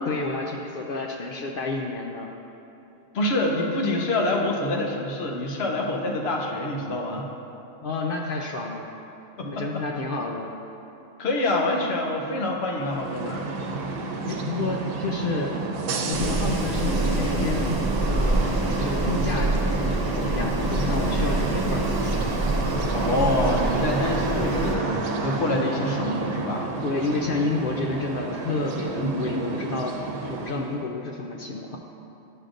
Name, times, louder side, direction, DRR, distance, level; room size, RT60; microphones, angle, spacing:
voice 1, 0.1-2.3 7.8-8.9 9.4-10.5 14.3-15.5 16.1-17.7 18.1-22.3 24.3-24.6 26.8-29.9 30.3-31.8, left 3 dB, 70° left, 0 dB, 0.5 m, -30 dB
voice 2, 3.1-7.3 9.4-9.7 11.2-13.5 22.9-26.8 29.0-29.6, left 1 dB, 55° left, 0 dB, 1.0 m, -26 dB
sound 1, 12.7-30.8, right 3 dB, 90° right, 1.1 m, -30 dB
Wind, 16.1-24.8, right 2 dB, 25° right, 0.5 m, -26 dB
10.5 x 6.5 x 2.5 m, 2.9 s
omnidirectional pair, 1.4 m